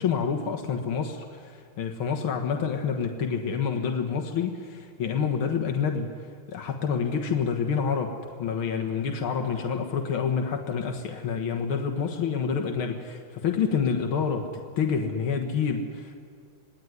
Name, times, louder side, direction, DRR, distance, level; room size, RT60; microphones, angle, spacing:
voice 1, 0.0-6.1 6.5-14.5 14.8-16.2, left 6 dB, 80° left, 3 dB, 2.4 m, -28 dB
27.0 x 19.0 x 9.6 m, 2.1 s
omnidirectional pair, 2.3 m